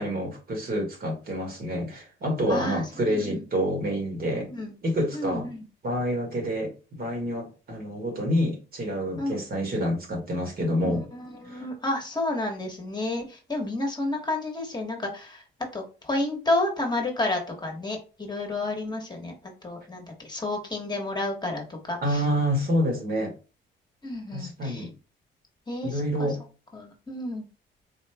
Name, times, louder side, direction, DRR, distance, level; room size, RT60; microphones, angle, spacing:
voice 1, 0.0-4.5 4.8-5.5 5.8-11.1 11.4-11.7 22.0-23.4 24.3-24.9 25.8-26.4, equal, 50° right, 1.7 m, -28 dB
voice 2, 2.5-2.8 3.1-3.4 4.5-4.7 5.1-5.6 9.2-9.4 10.8-15.4 15.7-19.3 19.6-22.2 24.0-24.9 25.7-26.0 26.7-27.5, left 2 dB, 20° left, 1.2 m, -30 dB
4.2 x 2.4 x 3.3 m
cardioid pair, 90°, 20 cm